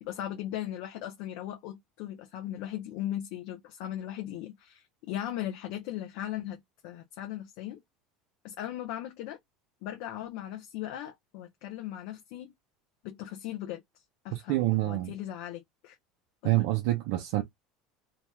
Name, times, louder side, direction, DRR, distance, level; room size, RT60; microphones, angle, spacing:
voice 1, 0.0-7.8 8.4-9.4 9.8-12.5 13.0-13.8 14.2-16.0 16.4-16.6, left 12 dB, 70° left, 0.7 m, -38 dB
voice 2, 14.3-15.1 16.4-17.4, right 17 dB, 75° right, 0.6 m, -27 dB
2.9 x 2.2 x 3.0 m
supercardioid pair, 130°, 0 cm